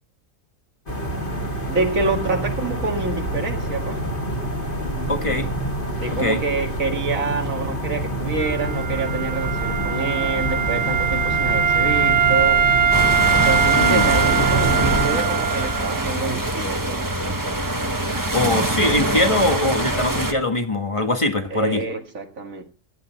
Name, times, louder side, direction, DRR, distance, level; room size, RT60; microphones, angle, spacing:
sound 1, 0.9-15.1, right 1 dB, 40° left, 3.2 m, -26 dB
voice 1, 1.7-4.0 6.0-12.7 13.4-17.7 21.5-22.6, right 3 dB, 75° right, 2.4 m, -27 dB
voice 2, 5.1-5.5 6.2-6.4 13.8-14.1 18.3-21.8, left 2 dB, 25° left, 1.6 m, -22 dB
Wind instrument woodwind instrument, 8.4-16.1, right 8 dB, 55° right, 1.4 m, -21 dB
sound 2, 12.9-20.3, right 1 dB, 15° right, 1.3 m, -24 dB
16.5 x 12.0 x 4.4 m
omnidirectional pair, 1.4 m